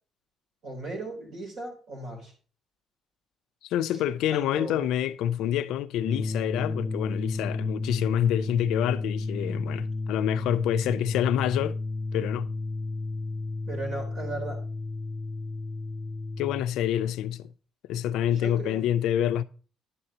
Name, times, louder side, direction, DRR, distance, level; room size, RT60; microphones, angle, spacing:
voice 1, 0.6-2.3 3.9-4.0 4.3-4.9 13.7-14.6 18.3-18.9, right 2 dB, 65° right, 3.4 m, -37 dB
voice 2, 3.6-11.8 12.1-12.5 16.4-17.5 17.9-19.4, left 11 dB, 85° left, 0.4 m, -27 dB
sound 1, 6.0-16.6, left 3 dB, 25° left, 0.5 m, -32 dB
9.8 x 7.6 x 2.8 m
cardioid pair, 170°, 0 cm